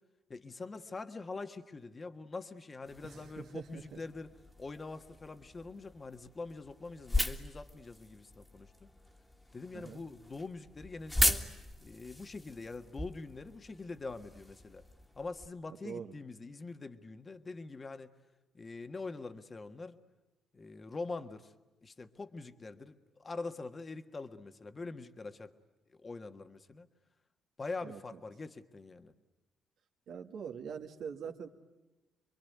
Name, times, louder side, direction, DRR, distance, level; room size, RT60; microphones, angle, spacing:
voice 1, 0.3-4.3 4.6-8.9 9.5-11.4 11.8-14.8 15.1-18.1 18.5-20.0 20.5-21.5 21.8-25.5 25.9-26.9 27.6-29.1, left 3 dB, 30° left, 8 dB, 1.5 m, -44 dB
sound 1, 2.8-15.5, left 1 dB, 15° left, 2.0 m, -38 dB
voice 2, 3.0-4.0 9.7-10.1 15.8-16.1 27.8-28.2 30.1-31.5, right 7 dB, 70° right, 4 dB, 2.0 m, -44 dB
26.5 x 23.0 x 9.5 m, 1.1 s
cardioid pair, 90°, 0 cm